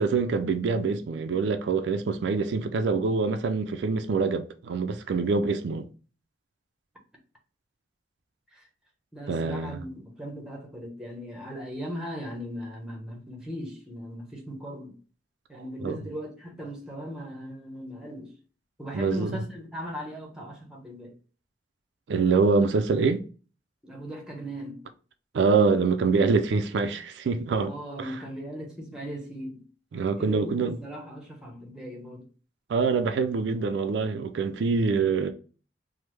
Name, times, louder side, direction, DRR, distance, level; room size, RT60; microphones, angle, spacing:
voice 1, 0.0-5.9 9.3-9.8 15.8-16.0 18.9-19.4 22.1-23.2 25.3-27.7 28.0-28.1 29.9-30.8 32.7-35.3, right 4 dB, 80° right, 0.4 m, -25 dB
voice 2, 9.1-15.0 15.5-18.3 18.8-21.1 23.8-24.8 27.6-29.7 30.2-32.3, equal, 5° right, 0.8 m, -38 dB
3.3 x 2.0 x 3.1 m
head